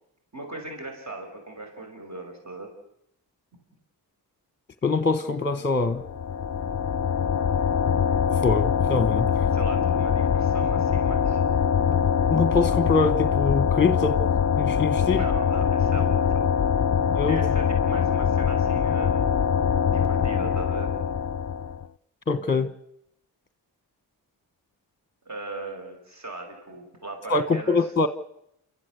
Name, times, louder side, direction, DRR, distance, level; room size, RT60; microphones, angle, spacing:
voice 1, 0.3-2.7 9.5-11.4 15.1-16.5 17.3-19.2 19.9-20.9 25.3-27.9, right 2 dB, 40° right, 5.8 m, -39 dB
voice 2, 4.8-6.0 8.4-9.3 12.3-14.2 14.6-15.2 17.1-17.4 22.3-22.7 27.3-28.1, left 4 dB, 25° left, 1.2 m, -23 dB
sound 1, 6.0-21.9, left 7 dB, 40° left, 0.8 m, -23 dB
29.5 x 13.5 x 8.1 m
supercardioid pair, 50°, 44 cm